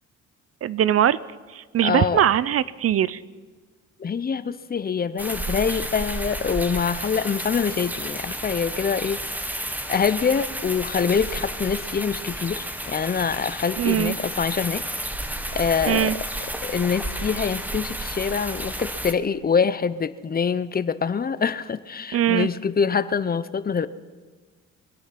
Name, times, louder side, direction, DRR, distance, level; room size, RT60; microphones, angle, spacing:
voice 1, 0.6-1.2 1.5-3.2 13.8-14.1 15.9-16.2 22.1-22.5, right 11 dB, 50° right, 19 dB, 0.6 m, -21 dB
voice 2, 1.8-2.2 4.0-9.5 9.9-14.8 15.5-16.2 16.6-23.9, left 6 dB, 30° left, 14 dB, 0.7 m, -25 dB
sound 1, 5.2-19.1, right 1 dB, 5° right, 1.2 m, -32 dB
24.0 x 8.9 x 5.9 m, 1.4 s
cardioid pair, 90°, 30 cm